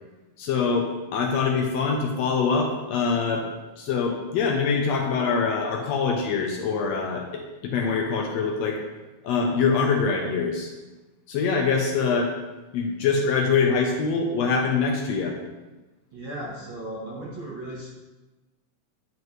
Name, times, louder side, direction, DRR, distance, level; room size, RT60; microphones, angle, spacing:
voice 1, 0.4-3.5 3.8-8.8 9.2-10.7 11.3-12.3 12.7-15.4, left 5 dB, 75° left, 2 dB, 1.7 m, -24 dB
voice 2, 16.1-17.9, right 1 dB, 60° right, -5 dB, 1.4 m, -36 dB
9.1 x 5.5 x 3.1 m, 1.2 s
omnidirectional pair, 3.4 m